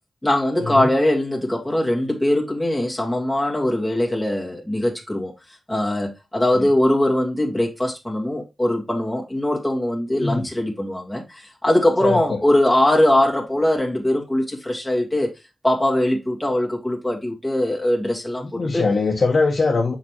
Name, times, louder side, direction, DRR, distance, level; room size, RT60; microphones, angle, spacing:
voice 1, 0.2-5.3 5.7-15.3 15.6-18.8, left 1 dB, 5° left, 1.9 m, -21 dB
voice 2, 12.0-12.4 18.4-19.9, left 3 dB, 60° left, 1.1 m, -22 dB
6.5 x 5.2 x 3.0 m
cardioid pair, 65°, 0 cm